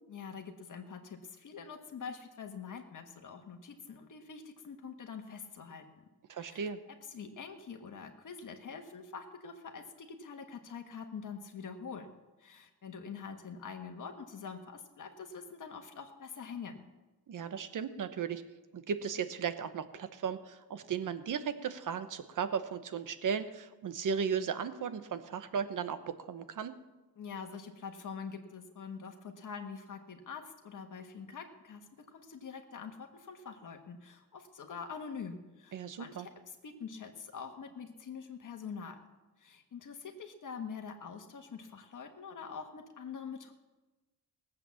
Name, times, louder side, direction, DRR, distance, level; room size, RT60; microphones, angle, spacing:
voice 1, 0.1-5.8 6.3-6.7 7.1-12.1 12.4-16.8 27.2-39.0 39.4-43.5, left 6 dB, 55° left, 4 dB, 1.5 m, -45 dB
voice 2, 6.3-6.8 17.3-18.4 18.7-26.7 35.7-36.3, right 7 dB, 55° right, 11 dB, 1.1 m, -36 dB
19.0 x 8.1 x 7.2 m, 1.2 s
wide cardioid pair, 140°, 38 cm